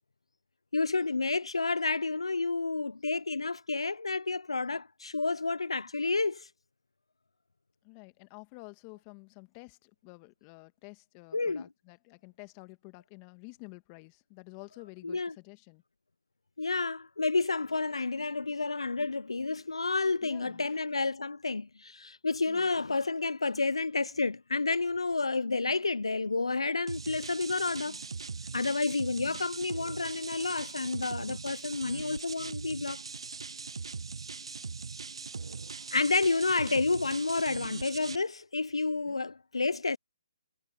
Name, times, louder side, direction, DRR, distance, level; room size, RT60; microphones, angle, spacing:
voice 1, 0.7-6.5 11.3-11.6 15.0-15.3 16.6-28.0 28.5-33.0 35.9-40.0, left 3 dB, 90° left, 0.4 m, -30 dB
voice 2, 7.8-15.8 20.2-20.8 22.5-22.7 29.2-29.4 39.1-39.2, left 31 dB, 25° left, 1.6 m, -50 dB
sound 1, 26.9-38.2, right 4 dB, 75° right, 0.4 m, -40 dB
figure-of-eight pair, 145°, 3 cm